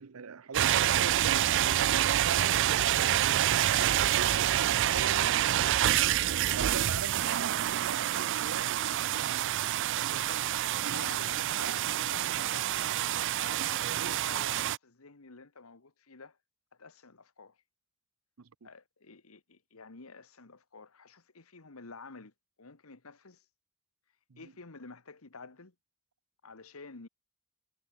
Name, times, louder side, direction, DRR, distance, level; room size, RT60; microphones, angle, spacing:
voice 1, 0.0-9.6 10.8-11.1 11.4-12.3 13.8-14.2 18.4-18.7 24.3-24.5, right 5 dB, 85° right, 0.7 m, -42 dB
sound 1, 0.5-14.8, right 12 dB, 60° right, 0.4 m, -27 dB
voice 2, 10.0-10.5 10.9-12.8 13.3-16.4 16.8-17.6 18.6-22.3 22.6-23.4 24.4-25.7 26.4-27.1, left 4 dB, 80° left, 1.6 m, -50 dB
head